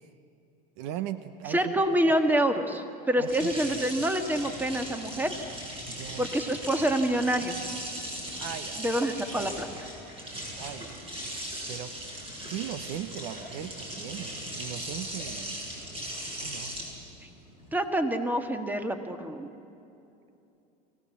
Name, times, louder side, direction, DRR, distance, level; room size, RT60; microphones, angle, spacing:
voice 1, 0.8-1.6 3.2-3.5 5.8-6.3 8.4-8.9 10.5-15.6 16.3-16.7, right 11 dB, 65° right, 12 dB, 1.0 m, -39 dB
voice 2, 1.5-5.3 6.2-7.6 8.8-9.9 17.7-19.5, right 1 dB, 10° right, 7 dB, 1.8 m, -27 dB
sound 1, 3.3-17.7, right 1 dB, 25° right, 7.5 m, -38 dB
24.0 x 17.5 x 7.3 m, 2.8 s
supercardioid pair, 105°, 21 cm